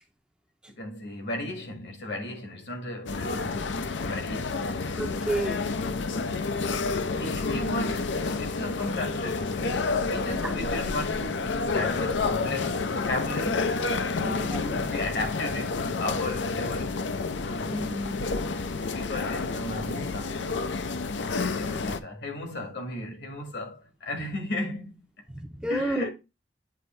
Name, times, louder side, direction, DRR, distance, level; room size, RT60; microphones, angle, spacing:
voice 1, 0.7-4.6 6.8-13.8 14.2-17.0 17.5-17.8 18.9-20.7 21.3-24.9 25.7-26.1, left 1 dB, 70° left, 1.7 m, -35 dB
sound 1, 3.1-22.0, left 4 dB, 85° left, 0.6 m, -29 dB
voice 2, 5.0-5.6 10.4-10.5 14.2-14.6 17.6-18.2 25.3-26.1, right 1 dB, 5° right, 0.5 m, -31 dB
8.1 x 2.7 x 4.3 m
head